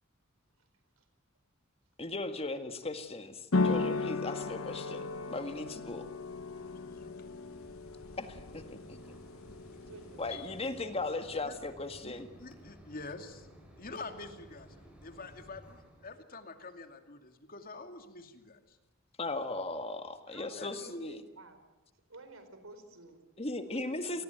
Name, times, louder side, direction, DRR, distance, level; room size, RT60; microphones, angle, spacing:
voice 1, 2.0-6.1 8.2-9.1 10.2-12.3 19.2-21.2 23.4-24.2, left 2 dB, 30° left, 8 dB, 1.9 m, -37 dB
sound 1, 3.5-10.8, left 3 dB, 90° left, 1.1 m, -36 dB
Mechanisms, 5.3-16.1, right 1 dB, 5° right, 6.1 m, -56 dB
voice 2, 6.6-7.1 9.3-9.7 10.3-10.5 11.4-11.5 12.0-12.1 12.4-13.5 13.8-18.8 20.6-20.7, left 3 dB, 45° left, 7 dB, 2.6 m, -47 dB
voice 3, 9.9-11.1 20.3-21.6 22.1-23.3 23.6-24.2, right 2 dB, 85° right, 10 dB, 4.5 m, -53 dB
28.5 x 19.5 x 9.3 m, 1.0 s
head